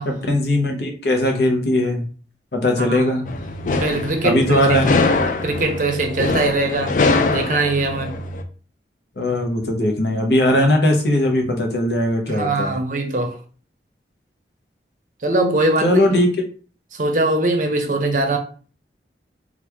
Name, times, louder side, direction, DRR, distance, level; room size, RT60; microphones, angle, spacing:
voice 1, 0.0-2.1 2.5-3.2 4.2-5.0 9.2-12.7 15.8-16.3, left 1 dB, 70° left, 0.8 m, -19 dB
voice 2, 2.8-3.1 3.8-4.6 5.4-7.0 7.3-8.2 12.3-13.4 15.2-16.1 16.9-18.4, right 2 dB, 45° right, 0.6 m, -21 dB
sound 1, 3.3-8.4, left 3 dB, 45° left, 0.3 m, -22 dB
3.0 x 2.4 x 3.4 m
head